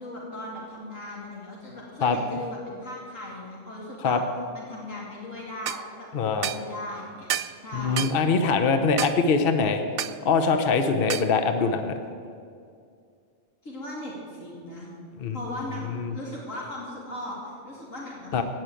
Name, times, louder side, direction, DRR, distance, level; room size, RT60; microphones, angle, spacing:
voice 1, 0.0-4.2 4.5-8.1 13.6-14.9 15.3-18.4, left 1 dB, 85° left, -4 dB, 3.0 m, -38 dB
sound 1, 5.7-5.8 6.4-6.6 7.3-7.6 8.0-8.2 9.0-9.2 10.0-10.2 11.1-11.3, right 11 dB, 60° right, 0.6 m, -29 dB
voice 2, 6.1-6.5 7.7-9.8 10.2-11.9 15.2-15.4 15.9-16.1 18.3-18.4, left 4 dB, 50° left, 7 dB, 1.0 m, -23 dB
17.0 x 6.4 x 9.1 m, 2.3 s
omnidirectional pair, 1.3 m